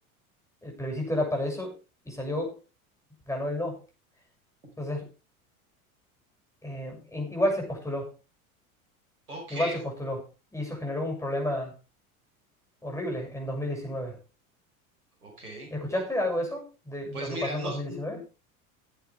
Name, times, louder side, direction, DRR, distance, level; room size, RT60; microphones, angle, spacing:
voice 1, 0.6-1.7 2.0-2.6 3.3-3.8 4.8-5.1 6.6-8.1 9.5-10.2 10.5-11.7 12.8-14.2 15.7-18.2, left 1 dB, 5° left, 7.0 m, -31 dB
voice 2, 9.3-9.8 15.2-15.7 17.1-18.4, right 1 dB, 85° right, 5.1 m, -37 dB
18.0 x 8.4 x 3.5 m
figure-of-eight pair, 80°, 43 cm